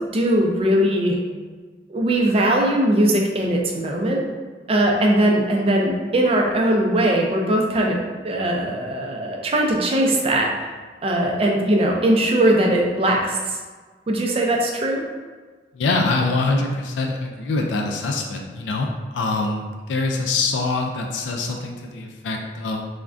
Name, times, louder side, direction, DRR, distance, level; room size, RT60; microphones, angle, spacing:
voice 1, 0.1-1.2 1.9-4.2 4.7-8.0 8.2-10.5 11.0-13.6 14.1-15.0, right 1 dB, 35° right, 0 dB, 0.4 m, -20 dB
voice 2, 15.7-22.8, left 3 dB, 90° left, 2 dB, 0.3 m, -24 dB
3.4 x 2.1 x 2.4 m, 1.4 s
head